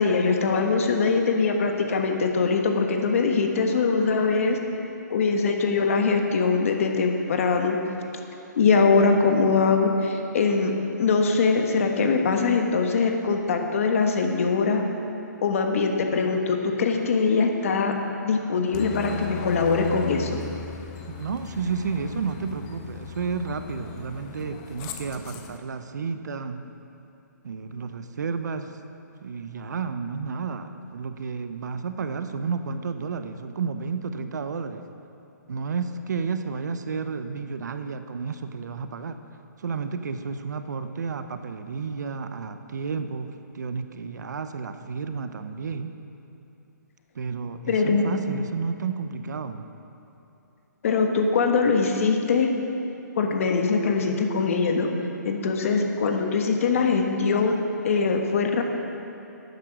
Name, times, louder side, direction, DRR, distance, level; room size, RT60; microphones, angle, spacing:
voice 1, 0.0-4.6 5.1-7.8 8.6-10.7 11.0-14.8 15.4-17.9 18.2-20.4 47.7-48.2 50.8-52.5 53.2-54.9 55.2-57.6 57.8-58.6, left 4 dB, 45° left, 4 dB, 1.3 m, -22 dB
Aircraft, 18.7-25.6, left 6 dB, 20° left, 0.5 m, -37 dB
voice 2, 21.1-26.6 27.4-28.7 29.2-34.8 35.5-39.2 39.6-45.9 47.1-49.7, right 5 dB, 65° right, 9 dB, 0.8 m, -31 dB
11.5 x 9.3 x 6.1 m, 2.8 s
hypercardioid pair, 165°, 10 cm